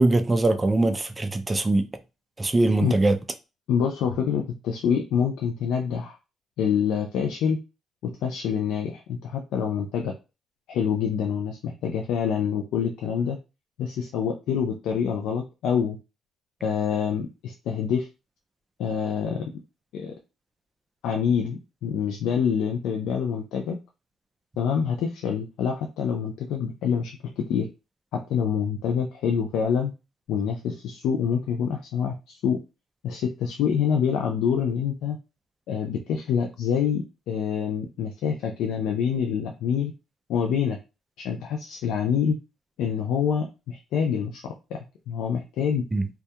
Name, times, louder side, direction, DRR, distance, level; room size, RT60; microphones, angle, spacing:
voice 1, 0.0-1.9 2.4-3.2 45.9-46.1, right 2 dB, 20° right, 0.3 m, -22 dB
voice 2, 3.7-6.2 6.6-7.6 8.2-10.1 10.7-13.4 13.8-16.0 16.6-18.1 18.8-19.4 19.9-20.1 21.0-23.8 24.6-27.7 28.3-29.9 30.3-32.6 33.0-35.2 35.7-39.9 40.3-40.8 41.2-42.4 42.8-44.8 45.1-45.8, left 7 dB, 90° left, 0.3 m, -26 dB
2.2 x 2.2 x 2.7 m
cardioid pair, 90°, 0 cm